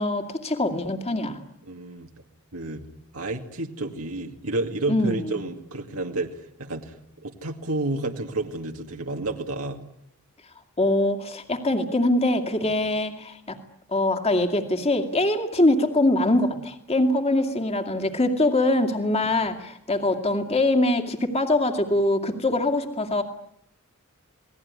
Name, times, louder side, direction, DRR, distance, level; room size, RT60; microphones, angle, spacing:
voice 1, 0.0-1.4 4.9-5.4 10.8-13.6 13.9-23.2, left 1 dB, 30° left, 5 dB, 2.4 m, -23 dB
voice 2, 1.7-2.1 2.5-2.8 3.1-6.9 7.2-9.8 12.6-12.7 19.2-19.4, right 2 dB, 75° right, 2 dB, 2.3 m, -30 dB
28.0 x 19.5 x 9.7 m, 0.74 s
head